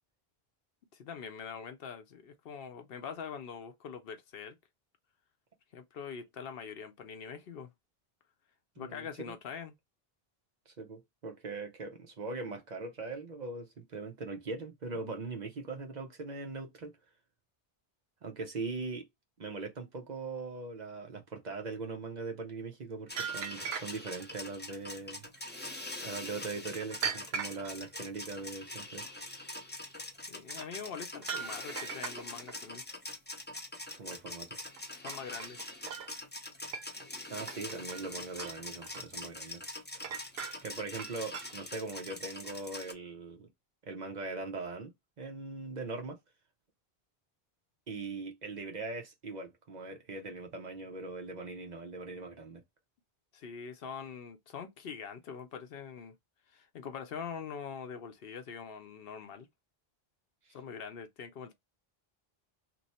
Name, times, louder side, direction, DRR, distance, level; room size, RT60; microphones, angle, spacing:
voice 1, 0.9-4.6 5.7-7.7 8.8-9.7 30.3-32.8 35.0-35.6 53.3-56.2 56.5-59.5 60.5-61.5, left 6 dB, 70° left, 0.8 m, -43 dB
voice 2, 8.8-9.3 10.7-17.0 18.2-19.1 19.4-25.3 26.0-29.1 34.0-34.5 37.3-39.6 40.6-43.5 43.8-46.2 47.9-52.6 60.4-60.6, right 3 dB, 50° right, 0.7 m, -41 dB
sound 1, 23.1-42.9, left 2 dB, 15° left, 0.4 m, -44 dB
sound 2, 23.1-24.3 26.7-27.8 30.5-30.7 31.2-32.5 34.6-34.8 35.1-36.1 36.7-37.1 37.5-38.1 38.4-39.1 40.0-40.7 41.0-41.5, right 7 dB, 75° right, 0.9 m, -39 dB
3.0 x 2.0 x 4.1 m
omnidirectional pair, 1.0 m